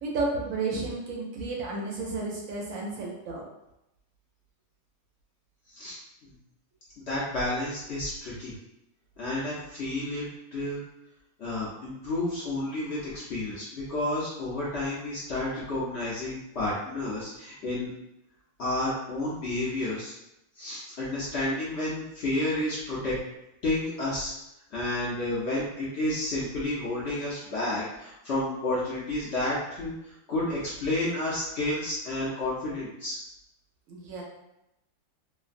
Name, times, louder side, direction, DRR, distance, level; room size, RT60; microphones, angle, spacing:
voice 1, 0.0-3.4 33.9-34.2, right 3 dB, 70° right, -2 dB, 0.9 m, -32 dB
voice 2, 7.1-8.5 9.2-10.3 10.5-10.8 11.4-17.9 18.6-20.1 20.6-23.2 23.6-24.3 24.7-29.9 30.3-33.2, left 1 dB, 60° left, -7 dB, 0.7 m, -30 dB
3.1 x 2.1 x 2.4 m, 0.88 s
omnidirectional pair, 1.6 m